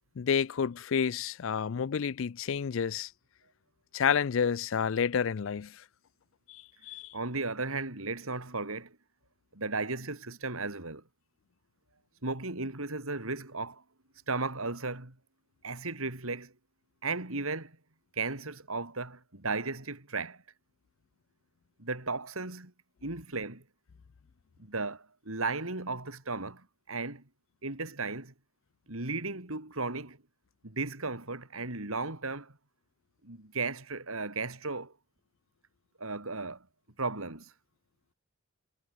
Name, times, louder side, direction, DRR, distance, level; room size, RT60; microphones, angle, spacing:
voice 1, 0.2-3.1 3.9-5.7 6.5-7.1, left 7 dB, 65° left, 0.4 m, -30 dB
voice 2, 7.1-9.0 9.5-11.0 12.2-13.8 14.3-15.2 15.6-16.5 17.0-17.8 18.1-20.4 21.8-22.7 23.0-23.6 24.6-27.2 27.6-28.3 28.9-30.2 30.6-32.5 33.2-34.9 36.0-36.7 37.0-37.5, right 3 dB, 75° right, 3.5 m, -35 dB
head